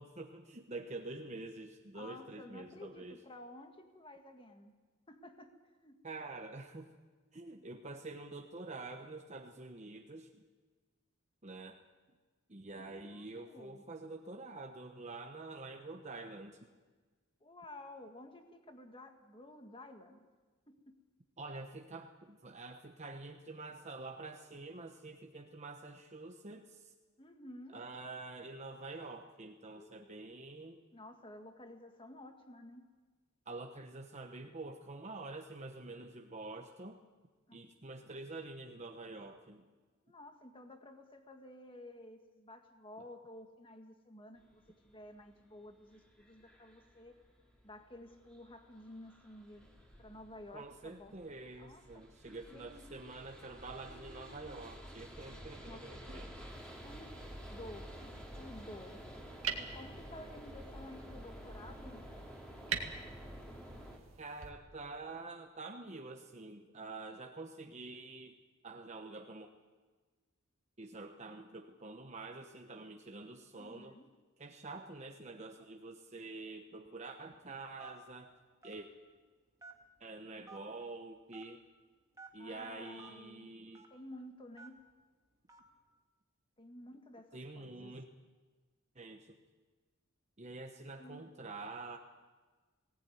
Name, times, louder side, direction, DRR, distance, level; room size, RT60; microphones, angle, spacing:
voice 1, 0.0-3.2 6.0-6.9 7.3-10.4 11.4-11.8 12.5-16.6 21.4-26.9 27.7-30.8 33.5-37.0 37.5-39.7 50.5-56.3 64.2-68.4 68.6-69.5 70.8-74.0 74.4-78.4 78.6-78.9 80.0-81.6 82.3-83.8 87.3-88.1 88.9-89.4 90.4-92.0, right 3 dB, 35° right, 3 dB, 1.1 m, -47 dB
voice 2, 1.9-4.7 5.1-5.5 5.8-6.0 7.5-7.7 12.7-13.8 17.4-20.2 20.7-21.0 27.2-27.8 29.7-30.5 30.9-32.9 37.5-37.6 40.0-47.1 47.6-49.7 50.0-51.1 51.6-53.0 53.8-54.6 55.3-55.4 55.6-56.2 56.8-57.1 57.5-59.0 59.6-62.0 73.6-74.1 82.4-83.5 83.9-84.8 86.6-87.9 91.0-91.3, left 1 dB, 25° left, 5 dB, 1.7 m, -53 dB
sound 1, 44.4-64.0, equal, 5° left, 2.9 m, -51 dB
sound 2, 56.5-64.5, right 6 dB, 70° right, 2.2 m, -46 dB
Telephone, 77.8-78.1 78.6-78.8 79.6-80.0 80.5-80.6 81.3-81.5 82.1-82.3 83.0-83.1 83.7-83.9 84.6-84.8 85.5-85.7, right 3 dB, 15° right, 2.4 m, -52 dB
19.5 x 18.0 x 9.3 m, 1.4 s
head